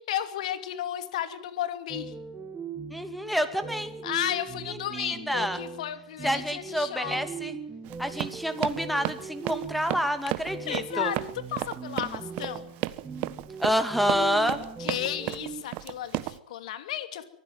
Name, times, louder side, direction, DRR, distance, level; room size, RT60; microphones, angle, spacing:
voice 1, 0.0-2.1 4.0-7.3 10.7-12.7 14.8-17.2, left 11 dB, 60° left, 10 dB, 2.6 m, -33 dB
sound 1, 1.9-15.6, right 6 dB, 15° right, 2.0 m, -40 dB
voice 2, 2.9-4.0 4.9-5.6 6.2-7.5 8.0-11.1 13.6-14.6, equal, ahead, 9 dB, 2.6 m, -28 dB
Run, 7.8-16.4, right 18 dB, 40° right, 1.2 m, -33 dB
23.5 x 15.5 x 9.4 m, 0.73 s
hypercardioid pair, 115°, 4 cm